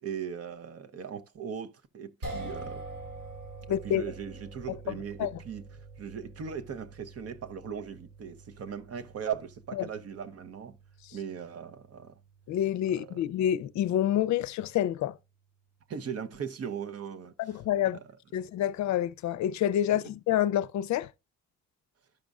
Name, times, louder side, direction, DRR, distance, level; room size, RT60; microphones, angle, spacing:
voice 1, 0.0-2.8 3.8-10.8 11.1-12.2 12.9-13.2 15.9-17.5 17.8-18.2 19.9-20.0, right 7 dB, 55° right, 0.8 m, -39 dB
sound 1, 2.2-14.5, right 2 dB, 85° right, 4.1 m, -46 dB
voice 2, 3.7-4.0 4.9-5.3 9.8-9.9 12.5-15.2 17.4-18.0 18.3-21.1, left 11 dB, 70° left, 0.5 m, -28 dB
12.5 x 5.2 x 2.4 m
cardioid pair, 90°, 30 cm